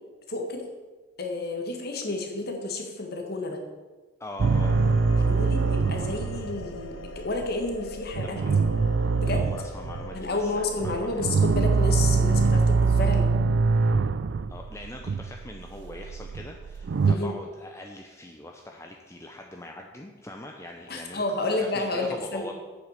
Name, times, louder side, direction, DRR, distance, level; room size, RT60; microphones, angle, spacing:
voice 1, 0.3-0.6 1.2-3.6 5.1-8.7 9.2-9.4 10.1-13.3 17.1-17.3 20.9-22.5, left 2 dB, 55° left, 3 dB, 1.7 m, -31 dB
voice 2, 4.2-4.8 8.2-8.5 9.2-11.1 14.5-22.5, left 1 dB, 15° left, 2 dB, 0.6 m, -42 dB
sound 1, 4.4-11.4, left 2 dB, 85° left, 0.7 m, -42 dB
sound 2, 4.4-17.1, right 4 dB, 60° right, 0.4 m, -24 dB
8.5 x 7.4 x 6.6 m, 1.3 s
head